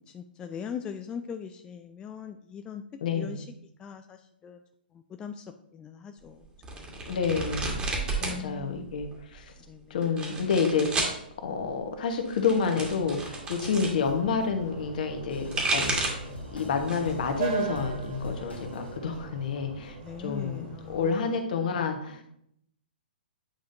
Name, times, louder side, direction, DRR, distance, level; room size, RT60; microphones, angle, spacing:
voice 1, 0.0-2.8 3.1-3.4 3.8-4.6 5.2-5.4 5.7-6.4 6.7-6.9 8.2-8.9 9.7-9.8 20.0-21.2, left 7 dB, 15° left, 0.3 m, -40 dB
voice 2, 3.0-3.4 7.1-7.8 8.2-9.5 9.9-11.1 11.4-16.0 16.5-22.3, left 5 dB, 55° left, 1.3 m, -29 dB
sound 1, 6.6-8.4 8.7-9.3 10.0-11.2 12.2-13.9 15.2-16.3 16.8-17.2 17.6-18.6, right 2 dB, 15° right, 1.6 m, -32 dB
sound 2, 12.7-21.1, right 7 dB, 50° right, 2.2 m, -40 dB
sound 3, 15.3-19.8, equal, 90° left, 1.4 m, -41 dB
9.1 x 5.0 x 2.7 m
figure-of-eight pair, 120°, 6 cm